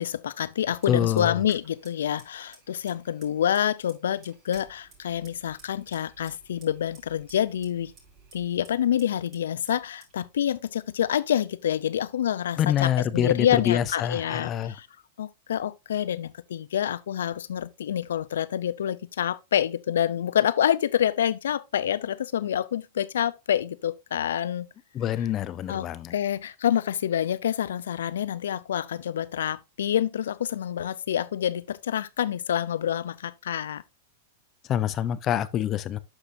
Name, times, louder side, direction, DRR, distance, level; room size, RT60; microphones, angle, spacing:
voice 1, 0.0-7.9 8.3-14.9 15.2-24.7 25.7-33.8, left 10 dB, 75° left, 0.5 m, -27 dB
Fire, 0.6-12.5, right 4 dB, 30° right, 5.4 m, -57 dB
voice 2, 0.9-1.4 12.6-14.8 24.9-26.1 34.7-36.0, left 10 dB, 35° left, 0.7 m, -26 dB
12.0 x 5.0 x 2.7 m
hypercardioid pair, 110°, 0 cm